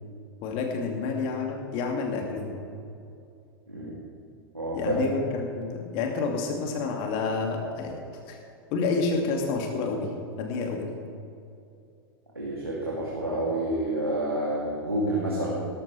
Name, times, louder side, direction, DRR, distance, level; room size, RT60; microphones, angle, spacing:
voice 1, 0.4-2.6 4.7-8.0 8.3-8.4 8.7-10.9, left 4 dB, 45° left, 2 dB, 2.3 m, -29 dB
voice 2, 4.5-5.0 12.3-15.5, right 1 dB, 85° right, -5 dB, 2.6 m, -29 dB
18.5 x 14.0 x 3.3 m, 2.5 s
figure-of-eight pair, 90°, 12 cm